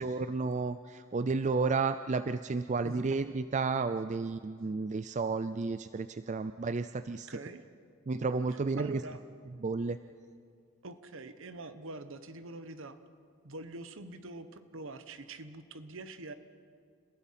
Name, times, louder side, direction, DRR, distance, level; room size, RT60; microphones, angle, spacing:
voice 1, 0.0-7.3 8.1-8.9 9.6-10.0, right 4 dB, 35° right, 11 dB, 0.4 m, -32 dB
voice 2, 7.3-7.6 8.5-9.2 10.8-13.0 13.4-16.3, right 2 dB, 65° right, 10 dB, 1.1 m, -44 dB
30.0 x 15.5 x 5.7 m, 2.2 s
head